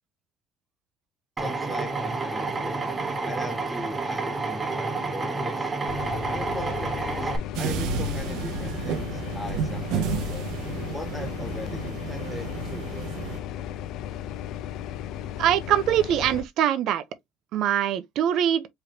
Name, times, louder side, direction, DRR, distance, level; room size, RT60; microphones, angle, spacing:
voice 1, 1.4-2.8 3.3-5.7 6.3-7.3 7.6-10.5 10.9-13.0, left 1 dB, ahead, 0.7 m, -39 dB
Drill, 1.4-7.4, right 3 dB, 20° right, 1.0 m, -29 dB
sound 1, 5.9-16.4, left 10 dB, 60° left, 0.4 m, -35 dB
sound 2, 7.5-13.4, right 5 dB, 85° right, 0.9 m, -31 dB
voice 2, 15.4-17.0 17.5-18.7, right 10 dB, 55° right, 0.7 m, -23 dB
4.9 x 3.1 x 2.8 m
cardioid pair, 170°, 0 cm